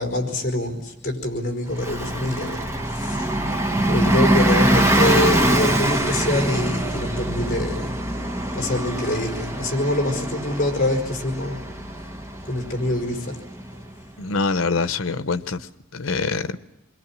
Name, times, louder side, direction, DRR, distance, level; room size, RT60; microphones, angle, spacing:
voice 1, 0.0-3.4 3.8-8.0 8.5-11.6 12.4-13.4, left 1 dB, 40° left, 3 dB, 4.9 m, -25 dB
Bus, 1.7-14.0, right 1 dB, 15° right, 1.2 m, -23 dB
voice 2, 14.2-16.6, left 4 dB, 80° left, 13 dB, 0.9 m, -25 dB
28.5 x 22.5 x 7.4 m, 0.88 s
head